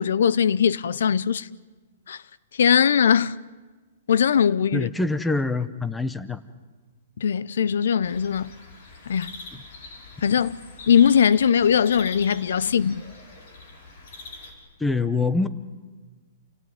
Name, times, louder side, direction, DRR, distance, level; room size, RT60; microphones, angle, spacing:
voice 1, 0.0-1.5 2.1-2.2 2.6-3.4 4.1-4.9 7.2-8.5 9.1-9.3 10.2-10.6 10.9-13.0, left 8 dB, 75° left, 0.7 m, -20 dB
voice 2, 4.7-6.4 14.8-15.5, left 3 dB, 5° left, 0.8 m, -25 dB
sound 1, 8.0-14.5, left 3 dB, 50° left, 5.0 m, -43 dB
29.0 x 17.0 x 9.2 m
hypercardioid pair, 170°, 0 cm